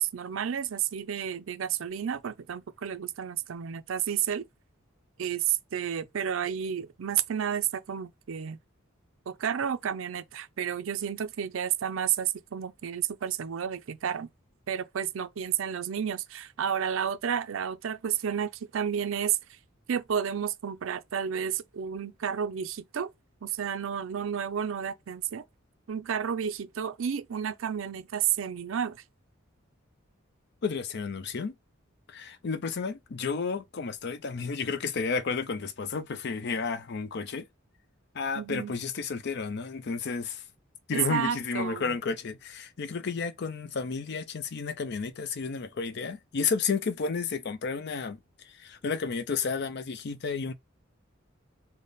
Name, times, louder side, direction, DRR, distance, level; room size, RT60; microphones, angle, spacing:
voice 1, 0.0-4.5 5.2-8.6 9.3-14.3 14.7-19.4 19.9-23.1 23.4-25.4 25.9-29.0 38.4-38.8 41.1-41.9, right 8 dB, 70° right, 0.4 m, -31 dB
voice 2, 30.6-31.6 32.1-37.5 38.1-40.4 40.9-48.2 48.4-50.5, left 5 dB, 55° left, 0.5 m, -32 dB
3.3 x 2.1 x 4.0 m
head